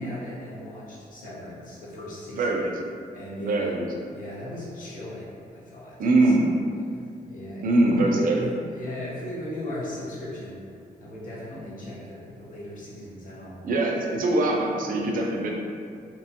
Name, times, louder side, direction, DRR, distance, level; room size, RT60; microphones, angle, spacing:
voice 1, 0.0-2.5 3.1-3.7 4.1-6.5 7.3-10.6 11.0-13.6, left 1 dB, 60° left, -7 dB, 0.8 m, -37 dB
voice 2, 2.4-2.7 3.4-3.9 6.0-6.5 7.6-8.4 13.6-15.5, right 2 dB, 60° right, 0 dB, 0.4 m, -22 dB
2.8 x 2.1 x 2.7 m, 2.3 s
wide cardioid pair, 160°, 16 cm